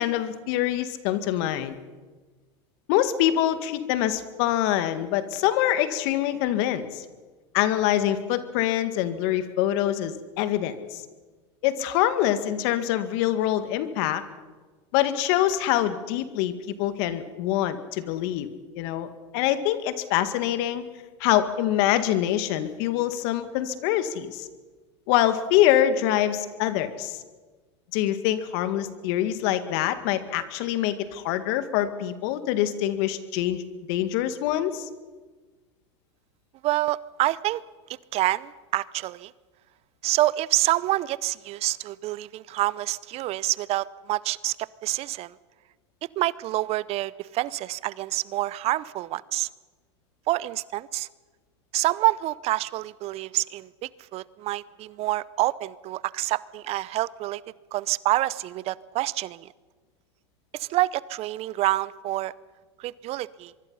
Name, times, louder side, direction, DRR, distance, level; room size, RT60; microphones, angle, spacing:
voice 1, 0.0-1.8 2.9-7.0 7.5-11.0 11.6-14.2 14.9-18.5 18.8-20.8 21.2-24.5 25.1-27.2 27.9-33.6 33.9-34.9, left 12 dB, 60° left, 10 dB, 2.0 m, -25 dB
voice 2, 36.6-37.6 38.1-39.3 40.0-45.4 46.0-49.5 50.3-51.1 51.7-57.4 57.7-59.5 60.5-62.3 62.8-63.5, right 16 dB, 45° right, 20 dB, 0.7 m, -27 dB
24.0 x 23.5 x 5.7 m, 1.3 s
hypercardioid pair, 105°, 15 cm